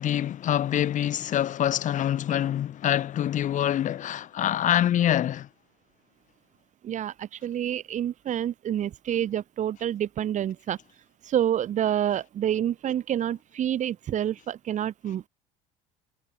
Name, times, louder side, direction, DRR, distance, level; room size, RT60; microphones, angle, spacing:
voice 1, 0.0-5.5, left 11 dB, 50° left, 6.3 m, -25 dB
voice 2, 6.8-10.8 11.3-15.3, right 10 dB, 50° right, 5.9 m, -28 dB
supercardioid pair, 95°, 16 cm